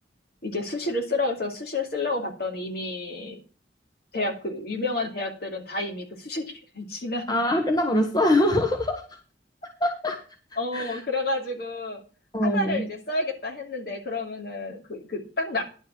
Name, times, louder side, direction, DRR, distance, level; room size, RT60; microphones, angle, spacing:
voice 1, 0.4-3.4 4.1-7.4 10.6-12.0 12.4-15.6, left 2 dB, 55° left, 1 dB, 2.6 m, -30 dB
voice 2, 7.3-9.0 9.8-10.2 10.7-11.0 12.3-12.8, left 1 dB, 20° left, 3 dB, 1.2 m, -23 dB
10.5 x 4.8 x 7.3 m, 0.37 s
head